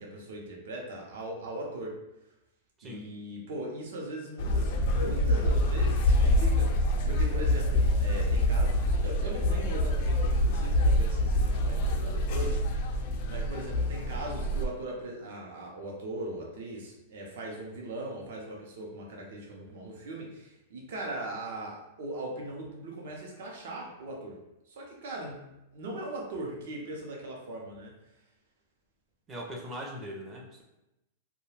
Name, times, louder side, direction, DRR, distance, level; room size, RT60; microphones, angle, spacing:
voice 1, 0.0-1.9 2.8-13.0 13.3-24.4 24.7-25.4 25.7-27.9, right 1 dB, 65° right, -1 dB, 0.7 m, -39 dB
voice 2, 2.8-3.1 29.3-30.6, equal, 20° right, -1 dB, 0.5 m, -40 dB
sound 1, 4.4-14.6, left 1 dB, 45° left, 0.3 m, -26 dB
2.3 x 2.2 x 3.2 m, 0.92 s
supercardioid pair, 155°, 0 cm